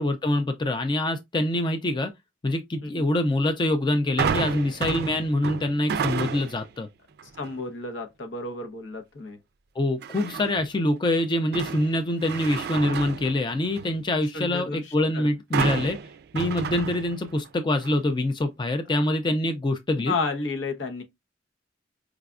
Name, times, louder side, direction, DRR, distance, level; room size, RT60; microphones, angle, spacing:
voice 1, 0.0-2.1 2.4-6.9 9.8-16.0 16.3-20.2, left 1 dB, 25° left, 0.4 m, -25 dB
sound 1, 4.2-6.7 7.2-7.6 10.0-10.7 11.2-14.0 15.5-17.5 17.8-17.9, right 6 dB, 60° right, 0.4 m, -31 dB
voice 2, 7.4-9.4 14.3-15.3 18.9-19.0 20.1-21.0, left 3 dB, 75° left, 0.8 m, -32 dB
4.8 x 2.2 x 2.4 m
head